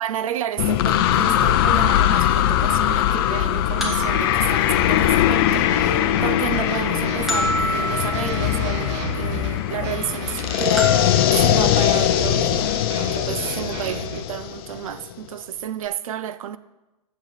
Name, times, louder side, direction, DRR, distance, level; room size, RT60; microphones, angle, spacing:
voice 1, 0.0-16.6, right 10 dB, 65° right, 0.5 m, -31 dB
sound 1, 0.6-15.1, left 12 dB, 40° left, 0.6 m, -21 dB
sound 2, 1.4-1.5 3.8-5.7 7.3-8.9 10.8-12.2, equal, ahead, 1.2 m, -30 dB
sound 3, 5.5-14.2, right 5 dB, 50° right, 1.5 m, -33 dB
8.1 x 7.2 x 5.7 m
hypercardioid pair, 150°, 19 cm